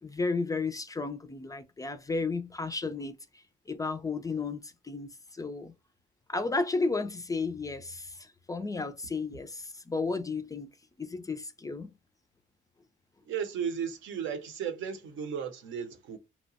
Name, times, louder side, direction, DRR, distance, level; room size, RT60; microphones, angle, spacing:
voice 1, 0.0-3.4 3.7-5.7 6.3-10.7 11.0-11.9, left 3 dB, 15° left, 0.3 m, -33 dB
voice 2, 13.3-16.2, right 7 dB, 75° right, 0.7 m, -35 dB
2.8 x 2.1 x 2.7 m
cardioid pair, 90°, 20 cm